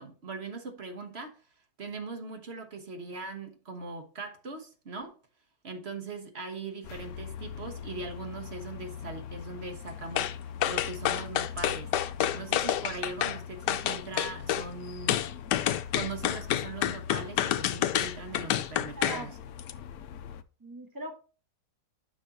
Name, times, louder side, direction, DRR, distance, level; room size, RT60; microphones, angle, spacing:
voice 1, 0.0-1.4 1.8-5.2 5.6-10.3 10.6-11.9 12.3-15.2 15.9-19.4, right 3 dB, 40° right, 1.4 m, -40 dB
sound 1, 6.8-20.4, left 8 dB, 70° left, 1.0 m, -42 dB
sound 2, 10.2-10.3 10.6-13.4 13.7-14.7 15.1-19.2 19.6-19.7, left 11 dB, 85° left, 1.3 m, -28 dB
voice 2, 19.0-19.3 20.6-21.2, right 2 dB, 10° right, 1.6 m, -40 dB
9.7 x 6.3 x 2.9 m
omnidirectional pair, 1.8 m